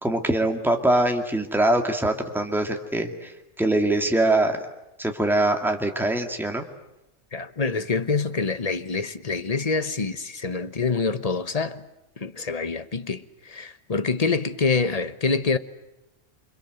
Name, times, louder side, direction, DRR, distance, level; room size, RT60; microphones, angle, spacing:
voice 1, 0.0-3.3 3.6-4.6 5.0-6.6, right 1 dB, ahead, 2.3 m, -23 dB
voice 2, 7.3-11.8 12.2-15.6, left 4 dB, 30° left, 1.2 m, -26 dB
28.0 x 25.5 x 8.0 m
omnidirectional pair, 1.3 m